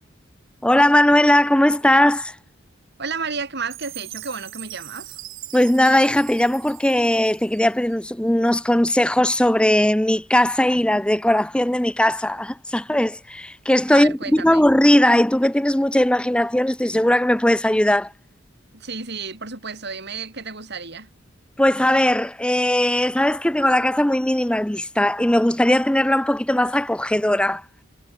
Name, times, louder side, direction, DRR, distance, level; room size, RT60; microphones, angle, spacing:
voice 1, 0.6-2.4 5.5-18.1 21.6-27.7, left 1 dB, 5° left, 0.6 m, -19 dB
voice 2, 3.0-5.2 13.9-14.7 18.7-21.1, right 5 dB, 55° right, 5.7 m, -32 dB
Chime, 3.7-7.9, right 15 dB, 90° right, 7.0 m, -40 dB
head